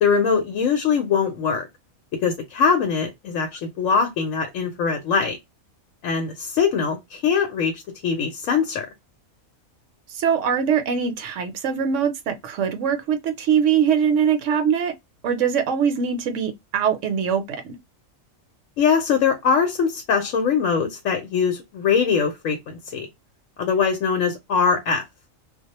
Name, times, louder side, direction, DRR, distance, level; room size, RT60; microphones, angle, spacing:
voice 1, 0.0-1.7 2.2-5.4 6.0-8.9 18.8-23.1 23.6-25.0, left 6 dB, 75° left, 1.0 m, -22 dB
voice 2, 10.1-14.9 15.2-17.7, right 7 dB, 70° right, 0.9 m, -22 dB
2.3 x 2.1 x 2.8 m
omnidirectional pair, 1.4 m